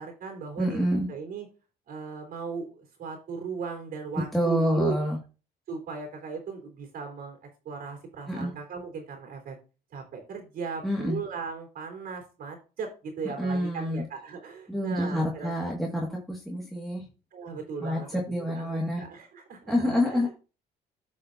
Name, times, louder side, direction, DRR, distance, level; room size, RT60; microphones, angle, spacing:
voice 1, 0.0-1.5 1.9-4.9 5.7-9.6 9.9-15.7 17.3-20.3, right 5 dB, 65° right, 1 dB, 3.6 m, -37 dB
voice 2, 0.6-1.1 4.3-5.2 8.3-8.5 10.8-11.2 13.4-14.0 14.7-17.0 17.8-19.0 19.7-20.3, equal, ahead, -3 dB, 1.9 m, -27 dB
16.0 x 5.6 x 2.7 m, 0.34 s
cardioid pair, 110°, 17 cm